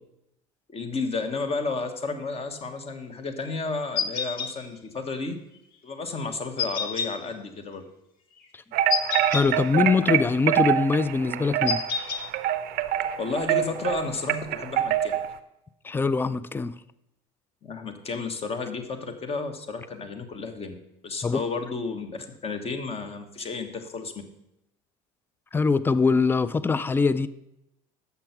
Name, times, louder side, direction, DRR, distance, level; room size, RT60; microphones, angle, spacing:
voice 1, 0.7-5.4 5.8-7.8 13.2-15.2 17.6-20.7 21.0-24.1, left 4 dB, 35° left, 7 dB, 1.2 m, -32 dB
sound 1, 4.0-4.5 6.6-7.1 8.9-9.5 11.7-12.2, left 6 dB, 55° left, 0.9 m, -27 dB
sound 2, 8.7-15.3, right 11 dB, 55° right, 0.6 m, -26 dB
voice 2, 9.3-11.8 15.8-16.7 21.2-21.4 25.5-27.3, left 4 dB, 10° left, 16 dB, 0.3 m, -23 dB
6.9 x 5.9 x 5.9 m, 0.86 s
supercardioid pair, 90°, 18 cm